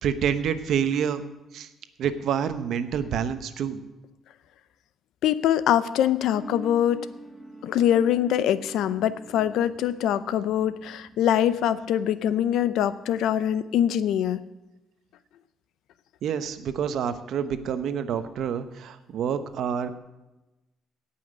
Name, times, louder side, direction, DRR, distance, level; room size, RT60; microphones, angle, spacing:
voice 1, 0.0-1.2 1.5-1.7 2.0-3.8 16.2-19.9, right 8 dB, 65° right, 11 dB, 0.9 m, -27 dB
voice 2, 5.2-7.0 7.6-14.4, left 10 dB, 80° left, 15 dB, 0.6 m, -23 dB
sound 1, 6.3-13.4, right 1 dB, 10° left, 1.6 m, -46 dB
17.0 x 5.8 x 6.4 m, 1.0 s
cardioid pair, 130°, 0 cm